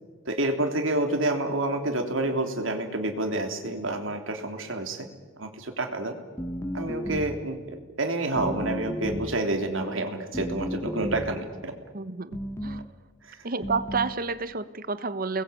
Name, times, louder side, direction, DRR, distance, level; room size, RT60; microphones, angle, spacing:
voice 1, 0.3-5.1 5.4-6.2 6.7-11.7 13.2-13.4, right 2 dB, 85° right, 4 dB, 3.4 m, -28 dB
sound 1, 6.4-7.5 8.4-9.5 10.3-11.4 12.3-12.9 13.6-14.2, equal, 15° left, 1.0 m, -33 dB
voice 2, 11.9-12.3 12.6-12.8 13.4-15.4, right 4 dB, 45° right, 14 dB, 1.2 m, -29 dB
29.5 x 21.0 x 8.7 m, 1.4 s
head